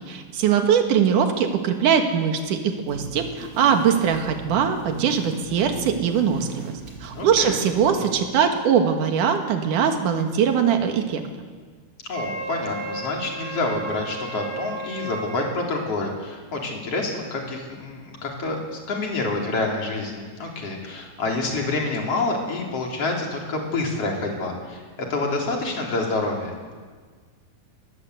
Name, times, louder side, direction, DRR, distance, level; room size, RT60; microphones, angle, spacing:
voice 1, 0.1-6.7 7.0-11.2, right 7 dB, 60° right, 5 dB, 3.0 m, -21 dB
sound 1, 2.9-8.3, right 4 dB, 20° right, 8.1 m, -40 dB
voice 2, 7.1-7.6 12.1-24.8 25.1-26.5, left 2 dB, 40° left, 0 dB, 4.1 m, -27 dB
Wind instrument woodwind instrument, 12.1-15.5, right 2 dB, 5° right, 6.0 m, -33 dB
19.5 x 19.5 x 8.1 m, 1.5 s
omnidirectional pair, 4.5 m